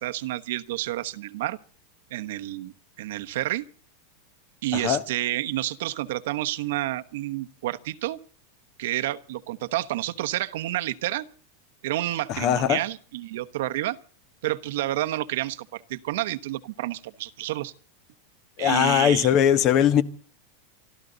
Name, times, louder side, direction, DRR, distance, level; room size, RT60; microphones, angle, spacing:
voice 1, 0.0-1.6 2.1-3.7 4.6-8.2 8.8-11.2 11.8-14.0 14.4-17.7 18.6-19.3, right 15 dB, 70° right, 1.1 m, -29 dB
voice 2, 12.3-12.8 18.6-20.0, left 10 dB, 40° left, 1.3 m, -20 dB
26.5 x 13.0 x 4.0 m
supercardioid pair, 150°, 0 cm